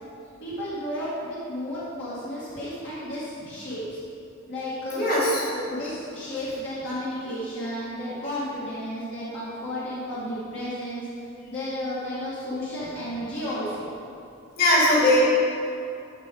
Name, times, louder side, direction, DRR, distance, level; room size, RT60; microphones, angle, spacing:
voice 1, 0.4-4.0 4.5-5.1 5.7-11.1 11.5-13.9, equal, 60° left, -10 dB, 2.1 m, -32 dB
voice 2, 4.9-5.7 14.6-15.2, left 1 dB, 45° left, -6 dB, 2.5 m, -20 dB
12.5 x 4.9 x 5.2 m, 2.6 s
head